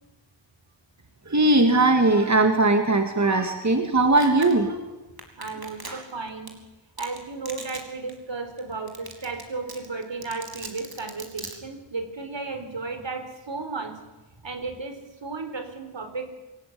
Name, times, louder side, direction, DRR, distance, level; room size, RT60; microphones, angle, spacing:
voice 1, 1.3-4.7 5.8-6.0, right 2 dB, 35° right, 5 dB, 2.5 m, -20 dB
Domestic sounds home sounds, 4.2-4.5 5.2-6.1 6.5-6.6 7.0-7.2 7.4-7.8 8.1-8.2 8.6-8.7 8.9-9.4 9.7-11.5, right 3 dB, 50° right, 4.5 m, -37 dB
voice 2, 5.4-6.6 7.0-14.0 14.4-16.3, right 3 dB, 70° right, 6 dB, 4.5 m, -34 dB
26.5 x 18.5 x 9.6 m, 1.1 s
wide cardioid pair, 85°, 46 cm